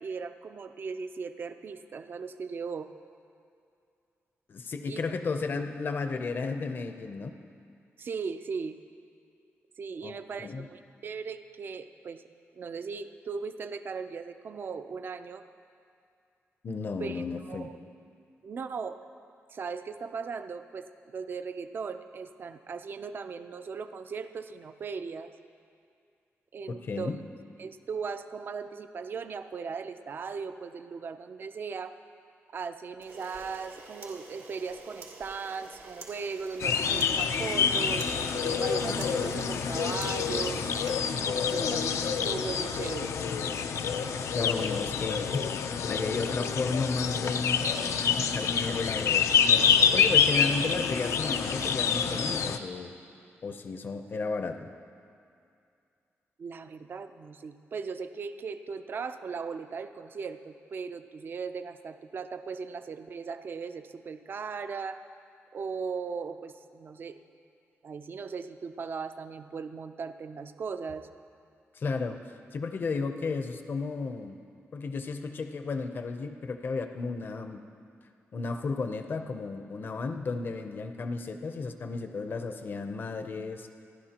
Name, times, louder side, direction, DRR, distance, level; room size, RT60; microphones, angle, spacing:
voice 1, 0.0-2.9 4.9-5.0 8.0-8.8 9.8-12.2 12.5-15.4 17.0-17.8 18.4-19.0 19.5-25.3 26.5-27.1 27.6-32.0 32.5-40.7 41.2-43.2 56.4-65.0 65.5-67.2 67.8-71.1, right 5 dB, 45° right, 9 dB, 0.5 m, -38 dB
voice 2, 4.5-7.3 10.0-10.7 16.6-17.7 26.7-27.2 44.3-45.5 45.9-47.6 48.0-49.3 49.7-52.9 53.4-54.7 71.7-74.4 74.7-77.6 78.3-83.7, left 4 dB, 45° left, 6 dB, 0.7 m, -33 dB
Camera, 33.0-41.7, right 3 dB, 85° right, 2.3 m, -47 dB
sound 1, 36.6-52.6, left 7 dB, 85° left, 0.6 m, -27 dB
28.0 x 11.5 x 2.9 m, 2.4 s
wide cardioid pair, 175°, 5 cm